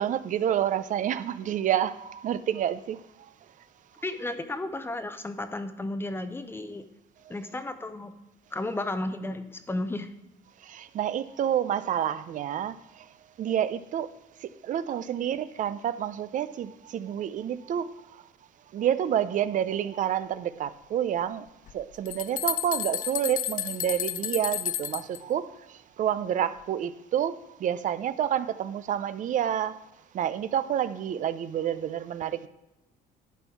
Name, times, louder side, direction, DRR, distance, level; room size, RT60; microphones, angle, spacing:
voice 1, 0.0-3.0 7.3-7.4 10.6-13.0 13.4-14.1 14.4-17.9 18.7-21.5 21.7-25.6 26.0-29.7 30.1-32.5, right 10 dB, 50° right, 14 dB, 0.5 m, -29 dB
voice 2, 4.0-6.8 7.3-8.1 8.5-10.1, left 2 dB, 15° left, 9 dB, 0.6 m, -33 dB
sound 1, 21.7-21.8 22.1-25.2, left 12 dB, 55° left, 0.4 m, -32 dB
11.5 x 4.4 x 4.5 m, 0.97 s
cardioid pair, 110°, 17 cm